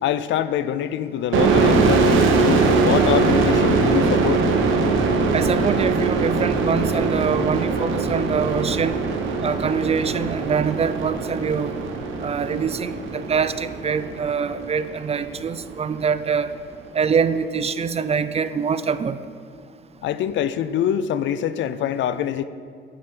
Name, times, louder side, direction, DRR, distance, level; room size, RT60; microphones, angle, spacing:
voice 1, 0.0-4.4 20.0-22.4, left 10 dB, 70° left, 14 dB, 0.4 m, -24 dB
sound 1, 1.3-14.8, right 4 dB, 85° right, 0.9 m, -21 dB
voice 2, 5.3-9.0 9.4-11.8 12.2-16.5 16.9-19.2, right 6 dB, 30° right, 12 dB, 0.4 m, -24 dB
8.6 x 5.7 x 5.2 m, 2.2 s
cardioid pair, 90°, 20 cm